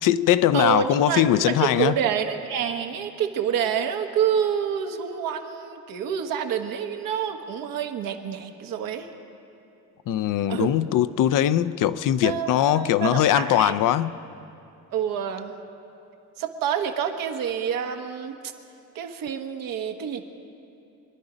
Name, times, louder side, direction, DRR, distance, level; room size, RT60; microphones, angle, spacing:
voice 1, 0.0-1.9 10.1-14.2, left 11 dB, 70° left, 14 dB, 0.6 m, -21 dB
voice 2, 0.5-9.1 10.5-10.7 12.2-13.7 14.9-15.5 16.4-18.4 18.9-20.2, right 8 dB, 85° right, 5 dB, 1.4 m, -27 dB
25.0 x 11.0 x 5.1 m, 2.7 s
cardioid pair, 115°, 33 cm